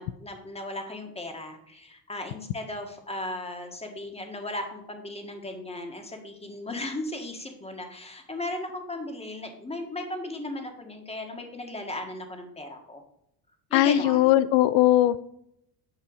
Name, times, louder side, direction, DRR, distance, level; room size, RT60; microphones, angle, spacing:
voice 1, 0.0-13.0 13.7-14.4, left 1 dB, 15° left, 4 dB, 1.8 m, -36 dB
voice 2, 13.7-15.2, left 14 dB, 80° left, 15 dB, 0.5 m, -20 dB
9.1 x 5.6 x 5.1 m, 0.78 s
supercardioid pair, 95°, 44 cm